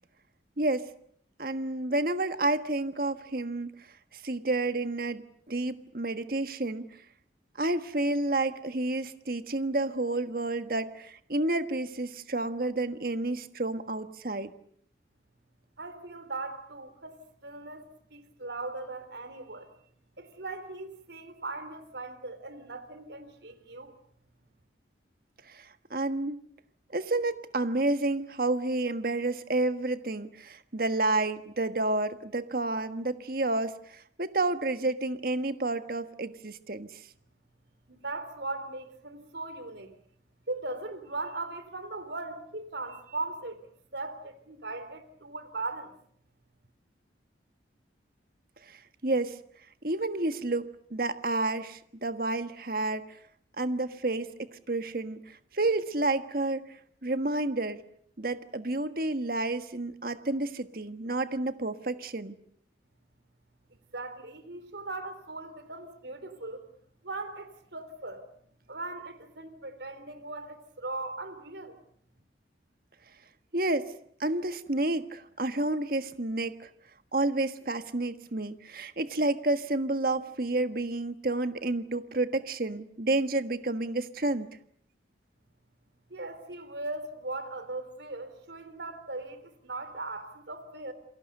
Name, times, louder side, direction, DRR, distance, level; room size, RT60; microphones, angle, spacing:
voice 1, 0.6-0.9 1.4-3.7 4.1-6.9 7.6-14.5 25.5-26.4 26.9-37.0 48.7-49.4 49.8-53.2 53.6-56.6 57.0-57.8 58.2-62.3 73.5-73.9 74.2-76.7 77.1-84.5, right 2 dB, 50° right, 1.5 m, -30 dB
voice 2, 15.8-19.7 20.2-24.0 37.9-40.0 40.5-43.6 43.9-45.9 63.9-66.6 67.0-68.2 68.7-71.8 86.1-90.9, right 2 dB, 70° right, 3.5 m, -39 dB
28.5 x 23.0 x 6.7 m
head